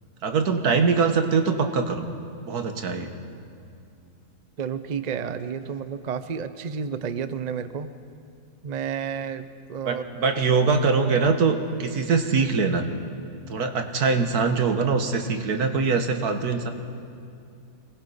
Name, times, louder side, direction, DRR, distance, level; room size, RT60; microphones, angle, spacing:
voice 1, 0.2-2.0 2.5-3.1 9.8-12.8 13.5-16.7, right 4 dB, 80° right, 6 dB, 1.9 m, -23 dB
voice 2, 4.6-7.9 8.6-10.0, right 7 dB, 40° right, 11 dB, 0.6 m, -31 dB
24.5 x 20.0 x 5.6 m, 2.5 s
omnidirectional pair, 1.6 m